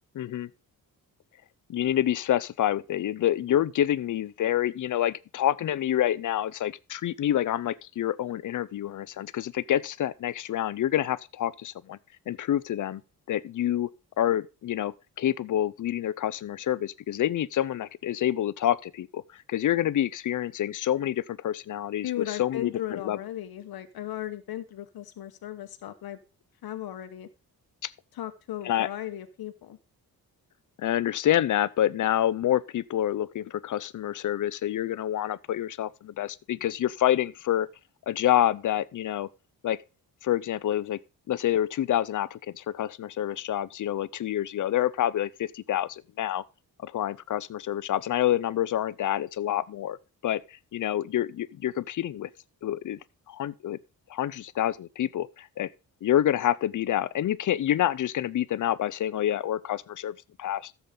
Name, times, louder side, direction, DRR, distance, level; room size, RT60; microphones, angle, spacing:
voice 1, 0.1-0.5 1.7-12.0 12.3-13.0 13.3-13.9 14.2-22.1 22.4-23.2 27.8-27.9 28.6-28.9 30.8-37.7 38.1-39.3 39.6-39.8 40.2-41.0 41.3-46.4 46.8-50.0 50.2-52.3 52.6-53.0 53.3-53.8 54.1-55.7 56.0-60.7, left 11 dB, 55° left, 0.6 m, -27 dB
voice 2, 22.0-26.2 26.6-27.3 28.1-29.8, left 12 dB, 80° left, 1.0 m, -36 dB
14.0 x 7.2 x 3.9 m
wide cardioid pair, 145°, 36 cm